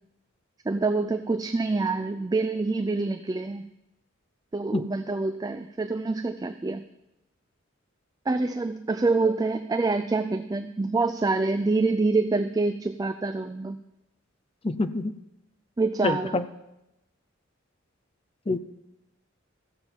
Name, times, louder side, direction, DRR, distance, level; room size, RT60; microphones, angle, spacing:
voice 1, 0.7-3.6 4.5-6.8 8.3-13.8 15.8-16.4, right 3 dB, 20° right, 9 dB, 0.3 m, -26 dB
voice 2, 14.6-15.1 16.0-16.4 18.5-18.6, left 2 dB, 30° left, 10 dB, 0.5 m, -26 dB
15.0 x 7.0 x 4.5 m, 0.91 s
head